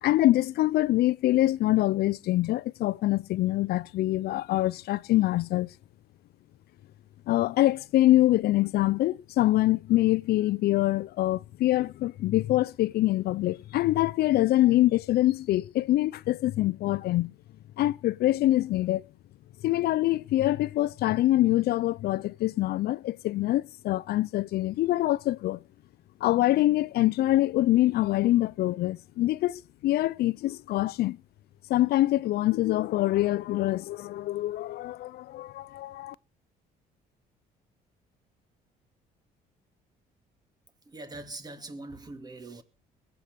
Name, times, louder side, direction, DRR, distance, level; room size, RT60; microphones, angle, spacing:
voice 1, 0.0-5.7 7.3-17.3 17.8-19.0 19.6-25.6 26.2-31.2 31.7-36.1, left 15 dB, 70° left, 0.6 m, -25 dB
voice 2, 40.9-42.6, right 2 dB, 25° right, 2.4 m, -42 dB
22.0 x 8.4 x 5.2 m
cardioid pair, 110°, 17 cm